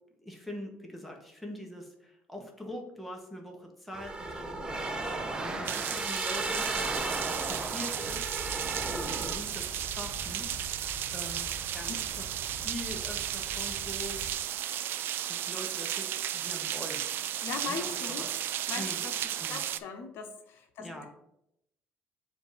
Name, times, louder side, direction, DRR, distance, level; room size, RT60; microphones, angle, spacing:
voice 1, 0.2-5.8 6.0-6.9 7.4-8.4 8.9-10.7 11.1-14.2 15.3-17.3 17.6-18.3 18.7-19.0 19.4-19.6 20.8-21.1, left 1 dB, ahead, 0 dB, 1.1 m, -43 dB
sound 1, 3.9-9.4, right 2 dB, 20° right, 0.7 m, -34 dB
voice 2, 5.5-6.1 11.9-12.0 17.4-18.2 18.7-21.1, left 5 dB, 70° left, 5 dB, 0.7 m, -40 dB
sound 2, 5.6-19.8, right 11 dB, 60° right, 0.3 m, -34 dB
sound 3, 8.0-14.3, left 1 dB, 35° left, 1.3 m, -45 dB
7.1 x 2.7 x 4.9 m, 0.80 s
cardioid pair, 130°, 4 cm